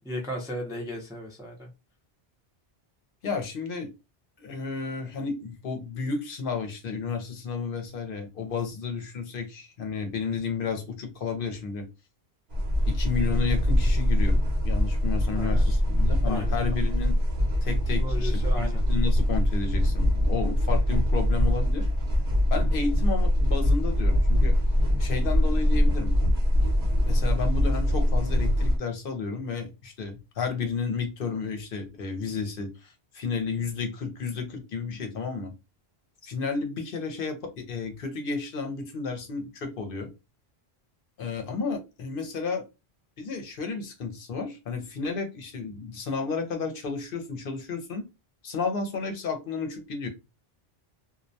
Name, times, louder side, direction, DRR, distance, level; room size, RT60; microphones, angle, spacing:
voice 1, 0.0-1.7 15.3-15.7 16.2-16.5 18.0-18.8, equal, 5° right, 0 dB, 0.4 m, -35 dB
voice 2, 3.2-3.9 4.4-11.9 12.9-14.4 14.6-17.2 17.6-21.9 22.5-24.6 25.0-26.2 27.1-35.5 36.2-40.1 41.2-42.6 43.2-48.1 48.4-50.1, left 5 dB, 65° left, 5 dB, 0.7 m, -32 dB
sound 1, 12.5-28.8, left 1 dB, 50° right, 0.7 m, -23 dB
2.2 x 2.1 x 2.6 m, 0.25 s
omnidirectional pair, 1.1 m